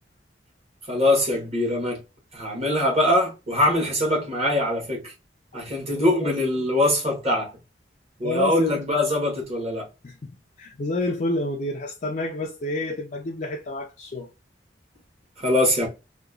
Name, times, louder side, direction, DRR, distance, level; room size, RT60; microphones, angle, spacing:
voice 1, 0.9-2.0 2.3-5.1 5.5-7.5 8.2-9.9 15.4-15.9, left 1 dB, 35° right, 1.1 m, -23 dB
voice 2, 8.2-8.8 10.0-10.3 10.6-14.3, left 2 dB, 40° left, 0.4 m, -29 dB
2.8 x 2.3 x 2.3 m
head